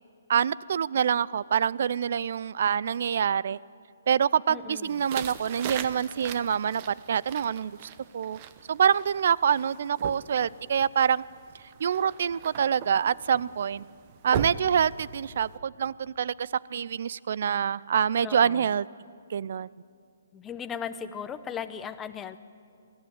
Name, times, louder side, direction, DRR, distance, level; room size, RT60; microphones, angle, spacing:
voice 1, 0.3-3.6 4.1-7.7 8.1-8.4 8.7-11.2 11.8-13.8 14.2-18.9 19.3-19.7, right 8 dB, 60° right, 22 dB, 0.4 m, -26 dB
voice 2, 4.5-5.0 18.2-18.7 20.3-22.4, left 7 dB, 15° left, 10 dB, 0.8 m, -37 dB
sound 1, 4.8-15.6, right 8 dB, 35° right, 1.0 m, -40 dB
20.5 x 14.5 x 9.3 m, 2.4 s
hypercardioid pair, 150°, 0 cm